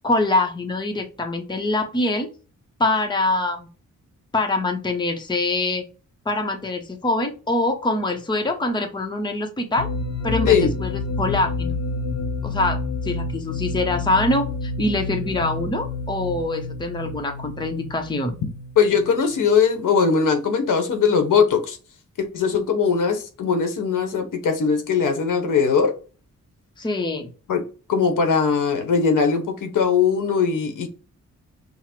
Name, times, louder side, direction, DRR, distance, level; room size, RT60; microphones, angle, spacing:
voice 1, 0.0-2.3 2.8-3.7 4.3-5.8 6.3-9.9 10.2-10.9 11.2-11.7 12.4-18.4 26.8-27.3, left 2 dB, 15° left, 0.7 m, -24 dB
sound 1, 9.8-19.4, left 3 dB, 55° left, 0.6 m, -29 dB
voice 2, 18.8-21.8 22.2-25.9 27.5-27.6 27.9-30.9, left 6 dB, 90° left, 1.1 m, -20 dB
5.7 x 2.0 x 4.4 m
wide cardioid pair, 150°, 31 cm